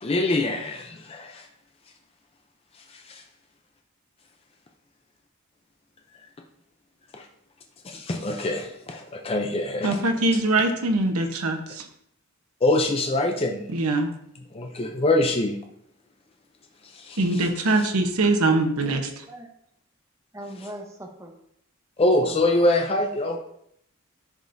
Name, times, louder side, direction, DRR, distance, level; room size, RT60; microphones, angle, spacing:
voice 1, 0.0-1.5 2.9-3.2 7.1-7.3 7.8-10.0 12.6-13.7 14.5-15.6 16.8-17.5 22.0-23.4, left 2 dB, 25° left, 3 dB, 0.5 m, -24 dB
voice 2, 9.8-11.9 13.7-14.1 17.2-19.1, right 2 dB, 85° right, 5 dB, 1.0 m, -22 dB
voice 3, 18.8-19.5 20.3-21.3 22.2-22.7, equal, 15° right, 2 dB, 0.7 m, -40 dB
10.0 x 5.1 x 2.6 m, 0.73 s
head